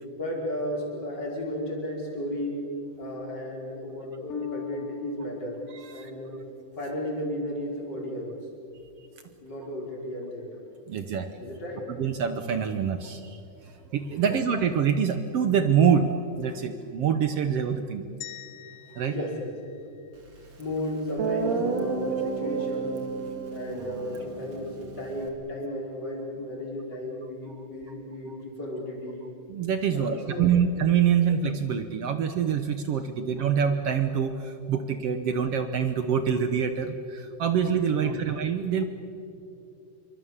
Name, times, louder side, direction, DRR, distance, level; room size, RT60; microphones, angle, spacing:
voice 1, 0.2-2.7 3.0-5.6 5.9-6.4 6.8-8.3 9.4-10.6 11.4-11.9 14.1-14.3 17.5-17.6 19.0-19.8 20.6-23.1 23.5-29.3 29.9-30.7 33.1-33.2 37.8-38.2, left 1 dB, 30° left, -2 dB, 5.2 m, -34 dB
Bass guitar, 4.3-7.3, left 7 dB, 60° left, 1.8 m, -40 dB
voice 2, 5.7-6.1 10.9-11.3 12.0-18.1 18.9-19.3 28.3-28.4 29.5-38.8, right 7 dB, 65° right, 9 dB, 1.6 m, -25 dB
sound 1, 18.2-20.5, left 14 dB, 80° left, 2.4 m, -46 dB
Guitar, 20.6-20.7 21.2-25.3, right 5 dB, 35° right, 2.8 m, -31 dB
27.5 x 24.5 x 7.4 m, 2.7 s
omnidirectional pair, 3.8 m